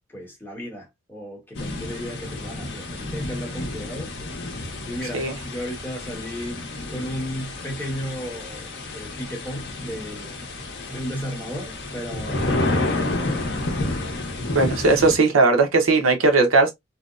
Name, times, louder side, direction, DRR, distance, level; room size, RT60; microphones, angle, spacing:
voice 1, 0.1-4.1 4.9-6.6 6.9-10.5 10.9-13.0, equal, 10° left, 0.9 m, -34 dB
sound 1, 1.5-15.2, left 2 dB, 55° left, 0.6 m, -30 dB
voice 2, 14.5-16.7, right 3 dB, 75° right, 0.7 m, -18 dB
2.8 x 2.0 x 2.3 m
head